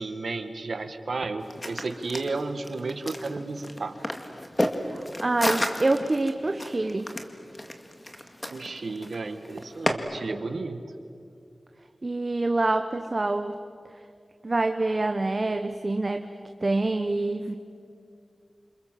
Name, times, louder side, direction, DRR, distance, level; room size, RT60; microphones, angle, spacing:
voice 1, 0.0-4.0 8.5-10.8, right 3 dB, 75° right, 8 dB, 1.8 m, -33 dB
sound 1, 1.4-9.9, left 1 dB, 25° left, 2.1 m, -32 dB
voice 2, 4.9-7.1 12.0-13.6 14.4-16.3 16.6-17.6, right 2 dB, 40° right, 7 dB, 1.1 m, -26 dB
29.0 x 26.5 x 7.6 m, 2.4 s
wide cardioid pair, 95°, 0 cm